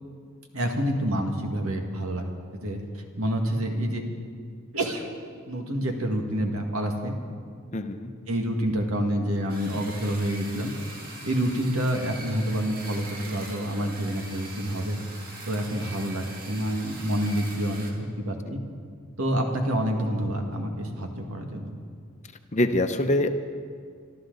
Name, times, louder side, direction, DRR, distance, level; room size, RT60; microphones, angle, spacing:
voice 1, 0.5-2.3 2.5-4.0 4.7-5.0 5.5-7.1 8.3-10.7 11.2-15.0 15.5-18.6 19.2-21.8, right 1 dB, 80° right, 3 dB, 2.0 m, -28 dB
voice 2, 7.7-8.1 18.4-18.5 22.5-23.3, left 1 dB, 35° left, 7 dB, 0.8 m, -24 dB
sound 1, 9.5-17.9, right 2 dB, 45° right, 2.2 m, -42 dB
25.5 x 13.0 x 4.0 m, 2.1 s
head